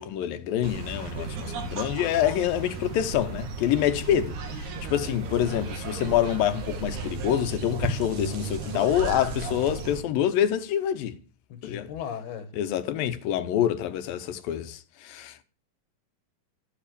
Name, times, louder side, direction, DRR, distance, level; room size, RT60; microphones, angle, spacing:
voice 1, 0.0-11.2 11.6-11.9 12.5-15.4, left 10 dB, 75° left, 2.6 m, -26 dB
sound 1, 0.6-10.0, right 3 dB, 85° right, 4.2 m, -34 dB
voice 2, 11.5-12.5, left 8 dB, 90° left, 3.9 m, -37 dB
12.5 x 10.0 x 6.8 m
omnidirectional pair, 4.4 m